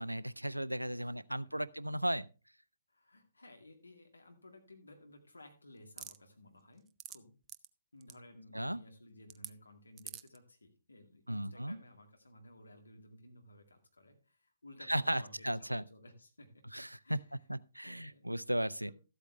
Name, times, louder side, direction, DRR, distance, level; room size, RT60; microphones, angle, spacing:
voice 1, 0.0-2.3 8.5-8.8 11.3-11.8 14.9-15.8 16.7-17.2 17.5-18.9, right 1 dB, 90° right, 0.4 m, -35 dB
voice 2, 0.8-1.4 2.9-7.3 7.9-16.6 17.0-17.4 17.8-18.3 18.9-19.0, left 1 dB, 75° left, 2.2 m, -57 dB
sound 1, 6.0-6.2 6.8-7.2 7.5-7.7 8.0-8.2 9.3-9.5 10.0-10.4, right 11 dB, 20° right, 0.4 m, -45 dB
13.0 x 8.2 x 3.2 m
figure-of-eight pair, 125°, 0 cm